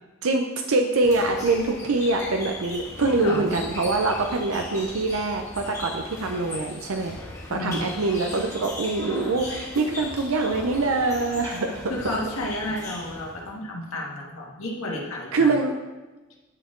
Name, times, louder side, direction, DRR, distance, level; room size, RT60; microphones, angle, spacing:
voice 1, 0.2-7.2 7.5-11.9 15.3-15.7, right 3 dB, 90° right, 4 dB, 0.6 m, -24 dB
sound 1, 1.0-13.5, left 2 dB, 15° left, 1.5 m, -38 dB
voice 2, 3.0-3.4 7.5-8.0 11.9-15.5, left 1 dB, 90° left, -2 dB, 1.7 m, -31 dB
9.8 x 6.5 x 3.8 m, 1.2 s
head